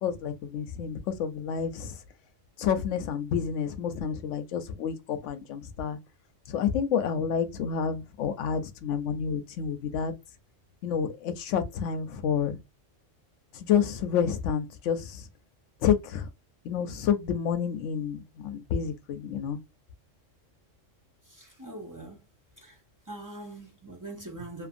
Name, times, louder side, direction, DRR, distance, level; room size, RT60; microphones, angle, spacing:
voice 1, 0.0-2.0 2.6-6.0 6.5-10.1 10.8-12.6 13.5-15.3 15.8-16.3 16.6-19.6, left 7 dB, 75° left, 0.9 m, -29 dB
voice 2, 21.2-22.2 22.6-22.8 23.1-24.7, right 2 dB, 25° right, 0.4 m, -42 dB
2.6 x 2.5 x 2.5 m
omnidirectional pair, 1.3 m